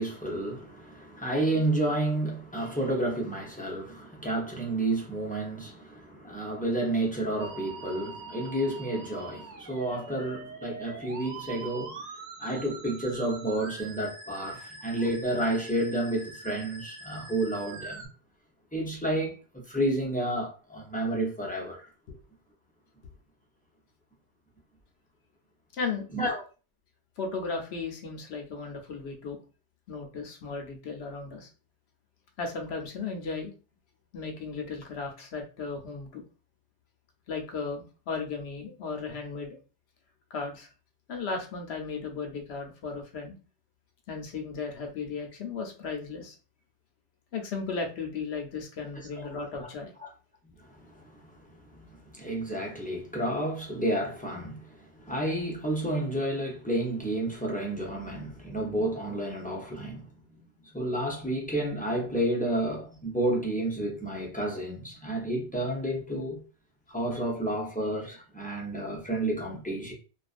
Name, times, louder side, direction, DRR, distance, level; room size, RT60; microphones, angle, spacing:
voice 1, 0.0-12.0 12.4-18.1 18.7-21.9 26.1-26.4 49.2-49.3 49.6-49.7 50.0-50.1 50.4-60.1 60.7-66.4 66.9-69.9, right 1 dB, 10° left, 0.5 m, -31 dB
Musical instrument, 7.4-18.1, right 4 dB, 50° right, 0.6 m, -44 dB
voice 2, 27.2-29.4 29.9-31.5 32.4-33.5 34.1-36.2 37.3-39.6 40.3-40.7 41.1-43.3 44.1-46.4 47.3-50.1, left 4 dB, 80° left, 0.9 m, -35 dB
2.5 x 2.3 x 2.4 m
omnidirectional pair, 1.1 m